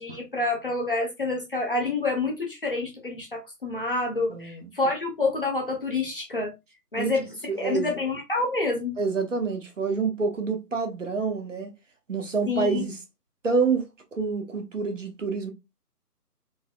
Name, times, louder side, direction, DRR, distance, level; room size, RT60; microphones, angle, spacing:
voice 1, 0.0-6.5 6.9-7.3 7.6-9.0 12.5-12.8, left 3 dB, 35° left, 0.7 m, -28 dB
voice 2, 4.3-4.7 7.0-7.1 7.5-7.9 9.0-11.7 12.1-13.0 13.4-15.5, right 4 dB, 50° right, 0.8 m, -27 dB
3.9 x 2.1 x 2.3 m
figure-of-eight pair, 150°, 48 cm